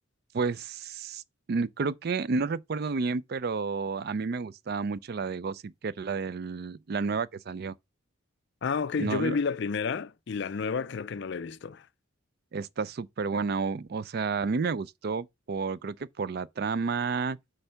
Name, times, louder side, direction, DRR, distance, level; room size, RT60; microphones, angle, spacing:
voice 1, 0.3-1.2 1.5-7.8 9.0-9.4 12.5-17.4, right 4 dB, 50° right, 0.4 m, -31 dB
voice 2, 8.6-11.9, left 5 dB, 60° left, 0.4 m, -30 dB
7.9 x 3.3 x 5.6 m
head